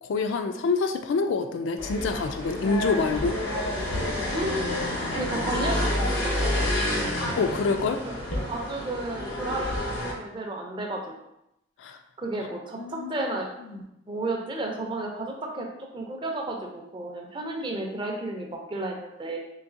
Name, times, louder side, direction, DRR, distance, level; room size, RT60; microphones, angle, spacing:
voice 1, 0.0-3.3 7.4-8.0 11.8-12.0 12.8-13.1, left 4 dB, 70° left, 6 dB, 0.3 m, -26 dB
sound 1, 1.8-10.1, left 1 dB, 90° left, 0.9 m, -29 dB
voice 2, 4.3-4.8 5.2-6.7 8.0-11.0 12.2-13.8 14.1-15.7 15.9-19.4, right 2 dB, 25° right, 1 dB, 0.4 m, -33 dB
3.9 x 2.7 x 2.5 m, 0.84 s
head